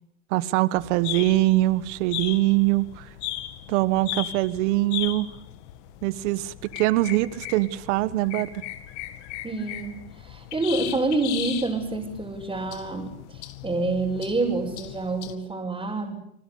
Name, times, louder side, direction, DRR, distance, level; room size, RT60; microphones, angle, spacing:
voice 1, 0.3-3.0 3.7-5.3 6.0-8.6, right 17 dB, 70° right, 15 dB, 1.4 m, -23 dB
sound 1, 0.8-15.4, left 14 dB, 70° left, 2.3 m, -37 dB
voice 2, 9.4-16.2, right 3 dB, 15° right, -4 dB, 5.3 m, -28 dB
30.0 x 20.5 x 6.8 m, 0.75 s
supercardioid pair, 105°, 36 cm